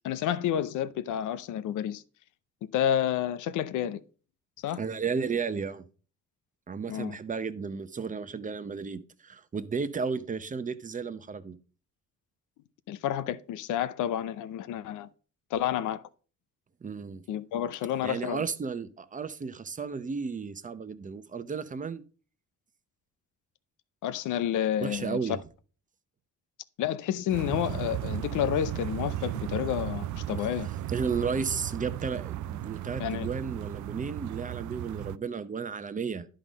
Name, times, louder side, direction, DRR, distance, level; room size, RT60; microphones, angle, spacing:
voice 1, 0.0-2.0 2.7-4.0 4.6-4.8 6.9-7.2 12.9-15.1 15.5-16.0 17.3-18.4 24.0-25.2 26.8-30.7 33.0-33.3, left 10 dB, 85° left, 0.6 m, -30 dB
voice 2, 4.8-5.8 6.7-11.6 16.8-17.2 18.0-22.0 24.8-25.4 30.9-36.3, right 5 dB, 25° right, 0.7 m, -33 dB
sound 1, 27.3-35.2, right 14 dB, 75° right, 0.5 m, -35 dB
11.0 x 3.9 x 5.1 m
cardioid pair, 90°, 30 cm